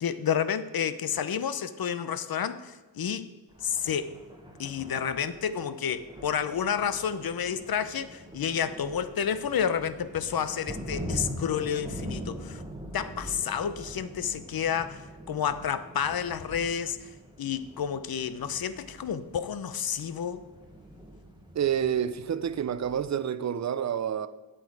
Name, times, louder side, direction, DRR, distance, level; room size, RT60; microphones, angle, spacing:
voice 1, 0.0-3.3 3.6-4.1 4.6-12.6 12.9-17.1 17.4-20.4, left 8 dB, 55° left, 0.6 m, -30 dB
Thunder, 3.5-23.2, equal, 10° right, 1.1 m, -43 dB
voice 2, 21.5-24.3, right 9 dB, 40° right, 0.5 m, -28 dB
8.9 x 7.9 x 4.7 m
wide cardioid pair, 105°, 44 cm